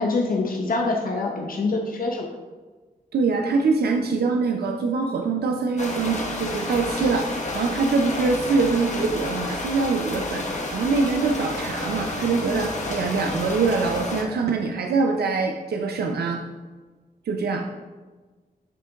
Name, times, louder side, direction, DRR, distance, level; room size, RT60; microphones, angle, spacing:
voice 1, 0.0-2.3, left 3 dB, 65° left, 1 dB, 0.8 m, -25 dB
voice 2, 3.1-16.4 17.3-17.7, right 4 dB, 90° right, 3 dB, 0.5 m, -24 dB
sound 1, 5.8-14.2, left 2 dB, 50° left, 1.2 m, -30 dB
10.5 x 3.8 x 3.5 m, 1.3 s
wide cardioid pair, 95°, 16 cm